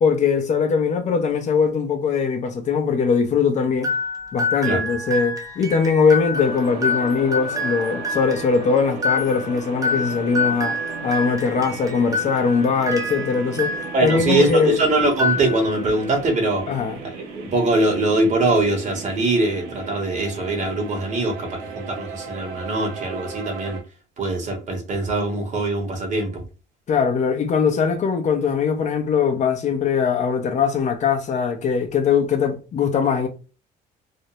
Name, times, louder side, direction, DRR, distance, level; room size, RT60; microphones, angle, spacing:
voice 1, 0.0-3.9 4.3-10.8 11.0-13.8 14.0-14.8 16.7-17.0 26.9-33.3, left 5 dB, 45° left, 0.6 m, -21 dB
sound 1, 3.8-14.7 15.1-15.9, left 2 dB, 20° right, 0.7 m, -27 dB
sound 2, 6.3-23.8, right 4 dB, 90° right, 0.7 m, -36 dB
voice 2, 13.9-16.6 17.0-23.8 24.2-26.4, right 2 dB, 45° right, 0.9 m, -22 dB
2.5 x 2.1 x 2.9 m
cardioid pair, 110°, 17 cm